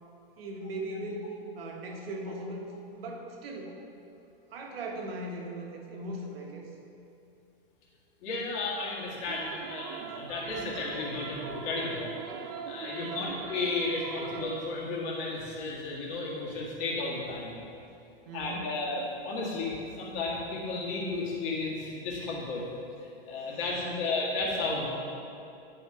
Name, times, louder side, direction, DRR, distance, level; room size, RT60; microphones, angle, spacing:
voice 1, 0.4-1.3 1.5-2.7 3.0-3.8 4.5-6.7 12.9-13.4 18.2-18.7 23.5-23.6 23.8-24.1, right 1 dB, 70° right, 0 dB, 1.4 m, -39 dB
voice 2, 8.2-12.1 12.4-17.5 18.3-22.6 23.3-24.9, left 3 dB, 35° left, -4 dB, 1.9 m, -33 dB
sound 1, 9.3-14.7, right 6 dB, 40° right, 0.5 m, -41 dB
9.7 x 4.3 x 4.9 m, 2.6 s
hypercardioid pair, 150°, 30 cm